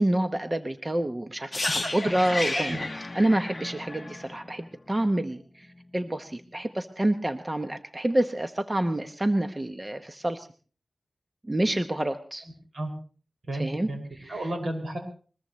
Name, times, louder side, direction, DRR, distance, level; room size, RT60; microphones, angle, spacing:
voice 1, 0.0-1.6 1.9-2.9 3.1-10.5 11.4-12.5 13.5-14.5, right 1 dB, 25° right, 7 dB, 0.9 m, -28 dB
sound 1, 1.5-5.4 5.6-5.8, left 2 dB, 30° left, 0.9 m, -33 dB
voice 2, 1.6-1.9 2.2-2.8 12.7-12.9 13.5-14.0 14.3-15.0, right 1 dB, 65° right, 3 dB, 5.7 m, -32 dB
21.5 x 21.0 x 3.1 m, 0.41 s
wide cardioid pair, 100°, 0 cm